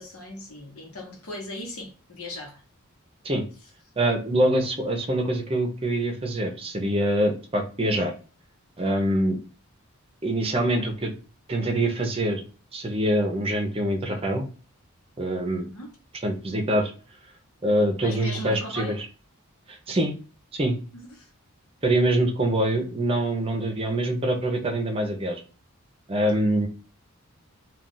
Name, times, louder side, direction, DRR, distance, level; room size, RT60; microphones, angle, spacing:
voice 1, 0.0-2.6 15.6-15.9 18.0-19.0 20.9-21.3, left 1 dB, 80° left, 1.0 m, -38 dB
voice 2, 4.0-8.1 8.8-9.4 10.2-11.1 11.5-12.4 12.7-14.4 15.2-15.6 16.2-16.9 17.6-19.0 19.7-20.1 20.5-20.8 21.8-25.4 26.1-26.7, right 1 dB, 25° right, 0.6 m, -24 dB
2.4 x 2.3 x 3.8 m
head